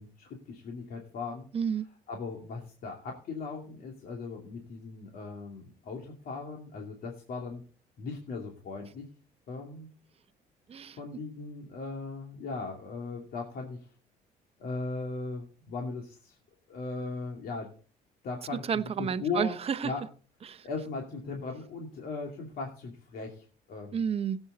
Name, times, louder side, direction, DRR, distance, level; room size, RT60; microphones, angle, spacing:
voice 1, 0.0-1.5 2.1-7.6 8.0-9.1 9.5-9.9 11.0-13.9 14.6-16.4 16.7-17.7 18.2-18.6 19.0-19.6 19.8-20.0 20.6-24.0, left 4 dB, 60° left, 2.5 m, -38 dB
voice 2, 1.5-1.9 10.7-11.0 18.6-19.9 20.4-20.7 23.9-24.4, right 7 dB, 35° right, 0.8 m, -31 dB
17.0 x 8.1 x 4.0 m
cardioid pair, 110°, 17 cm